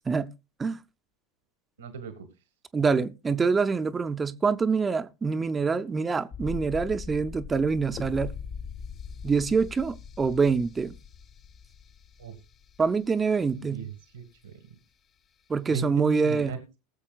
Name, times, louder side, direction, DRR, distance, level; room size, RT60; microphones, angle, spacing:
voice 1, 1.8-2.3 12.2-12.3 13.7-13.9 14.1-14.6 15.7-16.8, right 6 dB, 85° right, 1.5 m, -36 dB
voice 2, 2.7-8.3 9.2-10.9 12.8-13.9 15.5-16.6, right 5 dB, 20° right, 0.6 m, -25 dB
sound 1, 6.3-13.1 13.4-13.5, left 6 dB, 35° left, 0.7 m, -41 dB
21.0 x 7.2 x 2.4 m
figure-of-eight pair, 80°, 0 cm